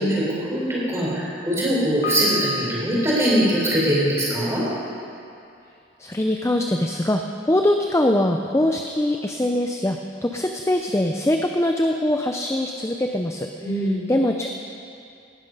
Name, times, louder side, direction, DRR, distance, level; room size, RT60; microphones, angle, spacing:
voice 1, 0.0-4.6 13.6-14.0, equal, 15° right, -6 dB, 4.6 m, -22 dB
Piano, 2.0-4.9, equal, 55° left, 1.8 m, -35 dB
voice 2, 6.0-14.5, left 1 dB, 15° left, 4 dB, 0.6 m, -23 dB
18.5 x 12.5 x 5.4 m, 2.6 s
head